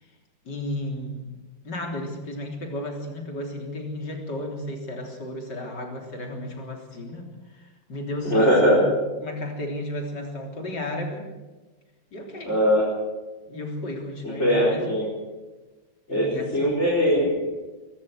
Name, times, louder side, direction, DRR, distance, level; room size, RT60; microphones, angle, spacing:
voice 1, 0.5-1.3 1.6-8.9 9.2-11.3 12.1-12.6 13.5-15.0 16.1-16.8, left 1 dB, 65° left, 2 dB, 4.2 m, -33 dB
voice 2, 8.2-8.8 12.4-12.8 14.2-15.0 16.1-16.3 16.5-17.5, equal, 35° left, -4 dB, 4.9 m, -20 dB
24.0 x 13.5 x 8.0 m, 1.2 s
omnidirectional pair, 2.0 m